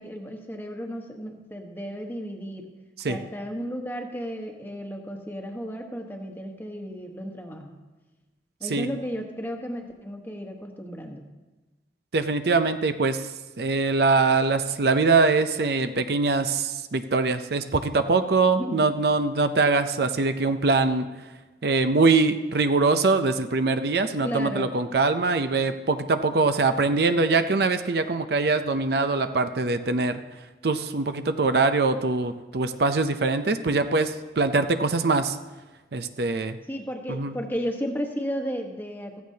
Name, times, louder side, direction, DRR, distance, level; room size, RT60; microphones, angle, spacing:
voice 1, 0.0-2.7 3.1-7.8 8.6-11.3 18.5-18.9 24.2-24.7 36.7-39.2, equal, 10° left, 2 dB, 1.2 m, -34 dB
voice 2, 12.1-13.3 13.6-21.1 21.6-30.2 30.6-35.4 35.9-36.6 37.1-37.3, right 3 dB, 60° right, 9 dB, 0.6 m, -23 dB
15.5 x 14.5 x 2.8 m, 1.2 s
head